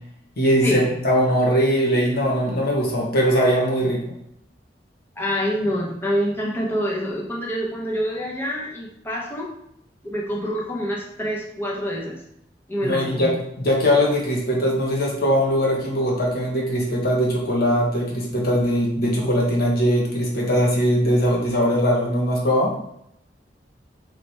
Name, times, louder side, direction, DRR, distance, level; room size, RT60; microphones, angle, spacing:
voice 1, 0.4-4.0 12.8-22.7, equal, 60° left, -1 dB, 1.2 m, -21 dB
voice 2, 5.2-9.5 10.0-12.2 12.7-13.4, equal, 15° left, -3 dB, 0.9 m, -26 dB
3.3 x 3.0 x 4.2 m, 0.75 s
head